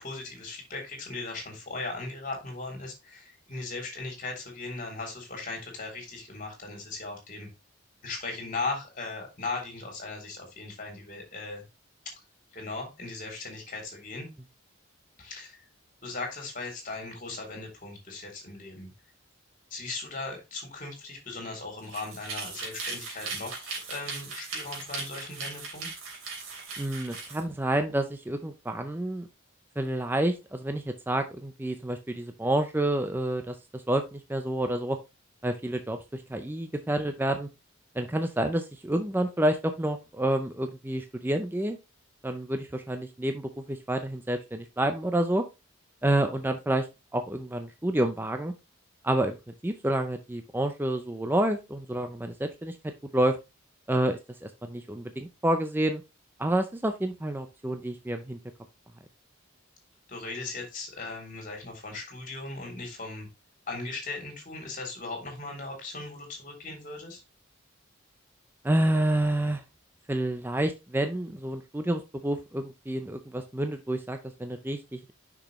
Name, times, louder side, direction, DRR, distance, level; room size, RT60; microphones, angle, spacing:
voice 1, 0.0-7.5 8.0-11.6 12.0-12.2 12.5-14.3 15.2-15.7 16.0-18.9 19.7-25.9 60.1-63.3 63.7-67.2, left 3 dB, 40° left, 1 dB, 3.2 m, -38 dB
sound 1, 21.8-27.4, right 4 dB, 80° right, 3.3 m, -38 dB
voice 2, 26.8-29.3 29.8-35.0 35.4-37.5 37.9-41.8 42.2-45.4 46.0-46.9 47.1-48.5 49.0-49.4 49.6-52.8 53.1-53.4 53.9-56.0 56.4-58.4 68.6-69.6 70.1-75.1, right 1 dB, 10° right, 7 dB, 0.5 m, -29 dB
6.5 x 6.1 x 3.1 m, 0.25 s
head